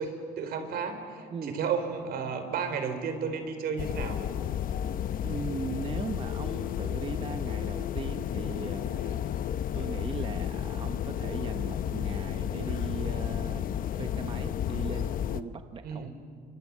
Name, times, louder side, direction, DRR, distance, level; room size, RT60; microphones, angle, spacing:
voice 1, 0.0-4.2 15.8-16.1, right 6 dB, 65° right, 8 dB, 3.7 m, -33 dB
sound 1, 3.8-15.4, left 10 dB, 55° left, 0.9 m, -32 dB
voice 2, 5.2-9.2 9.7-16.1, right 5 dB, 30° right, 8 dB, 0.9 m, -39 dB
29.5 x 25.0 x 7.3 m, 2.3 s
cardioid pair, 110°, 17 cm